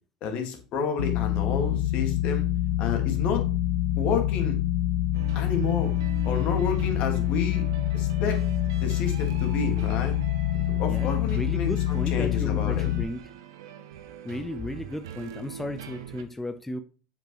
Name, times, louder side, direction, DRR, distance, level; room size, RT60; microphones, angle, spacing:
voice 1, 0.2-2.5 2.8-3.4 4.0-4.6 5.4-5.9 6.2-7.7 7.9-8.4 8.8-10.2 10.8-12.9, left 5 dB, 50° left, 4 dB, 1.8 m, -30 dB
sound 1, 1.0-13.0, left 13 dB, 75° left, 0.5 m, -26 dB
sound 2, 5.1-16.2, right 9 dB, 70° right, 0.7 m, -42 dB
voice 2, 10.9-13.3 14.2-16.8, left 1 dB, 10° left, 8 dB, 0.5 m, -34 dB
7.4 x 5.3 x 3.0 m, 0.35 s
hypercardioid pair, 75°, 3 cm